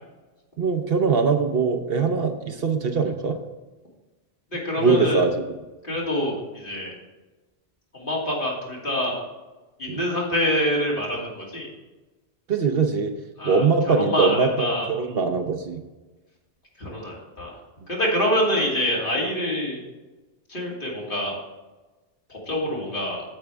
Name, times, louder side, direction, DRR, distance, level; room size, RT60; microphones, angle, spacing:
voice 1, 0.6-3.4 4.8-5.3 9.9-10.0 12.5-13.1 13.4-15.8, right 5 dB, 60° right, 6 dB, 0.9 m, -22 dB
voice 2, 4.5-5.2 5.8-7.0 7.9-9.2 9.8-11.7 13.4-14.9 16.8-17.6 17.9-19.9 20.5-21.4 22.3-23.2, left 1 dB, 50° left, -4 dB, 2.8 m, -26 dB
9.0 x 7.8 x 3.5 m, 1.2 s
omnidirectional pair, 1.2 m